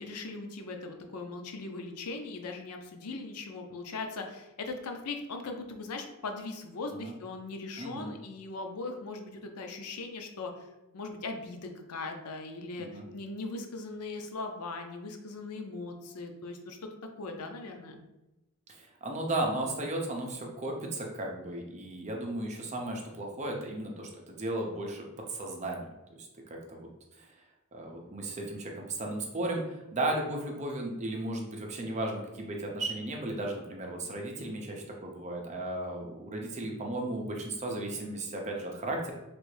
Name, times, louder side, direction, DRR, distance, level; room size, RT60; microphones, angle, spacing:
voice 1, 0.0-10.7 10.9-16.9 17.2-18.0, left 3 dB, 90° left, 4 dB, 0.6 m, -39 dB
voice 2, 7.8-8.1 12.8-13.0 18.7-25.9 26.2-26.9 27.7-39.1, right 1 dB, 30° right, 1 dB, 0.6 m, -35 dB
3.3 x 2.5 x 3.2 m, 0.99 s
head